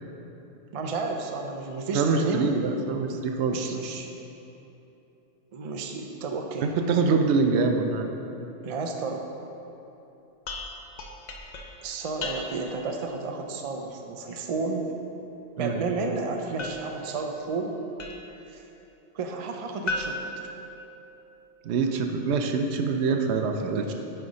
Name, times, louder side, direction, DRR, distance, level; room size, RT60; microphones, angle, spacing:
voice 1, 0.7-2.5 3.5-4.1 5.5-6.8 8.6-9.2 11.8-14.9 15.6-17.7 18.5-18.6 19.1-20.3 23.5-23.9, right 4 dB, 45° right, 3 dB, 0.4 m, -32 dB
voice 2, 1.9-3.7 6.6-8.1 15.6-15.8 21.6-23.9, right 4 dB, 75° right, 5 dB, 0.8 m, -25 dB
sound 1, 10.5-12.8 16.6-18.5 19.9-21.3, left 2 dB, 50° left, 0.6 m, -37 dB
9.3 x 3.4 x 4.9 m, 2.9 s
omnidirectional pair, 1.2 m